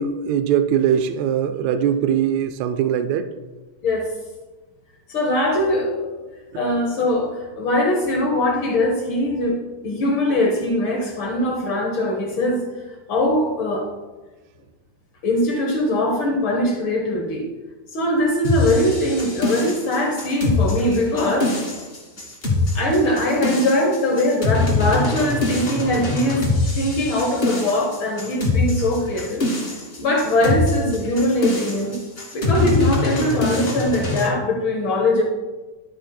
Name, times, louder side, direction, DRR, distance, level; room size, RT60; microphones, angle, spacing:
voice 1, 0.0-3.3, right 8 dB, 80° right, 9 dB, 1.7 m, -21 dB
voice 2, 5.1-6.2 6.5-9.6 9.8-12.6 13.1-13.9 15.2-17.5 17.9-21.6 22.7-26.4 26.7-29.4 30.0-32.0 32.3-35.2, left 1 dB, 75° left, 0 dB, 1.1 m, -21 dB
sound 1, 18.4-34.3, left 2 dB, 30° left, 1.2 m, -23 dB
11.5 x 8.6 x 2.3 m, 1.2 s
omnidirectional pair, 3.5 m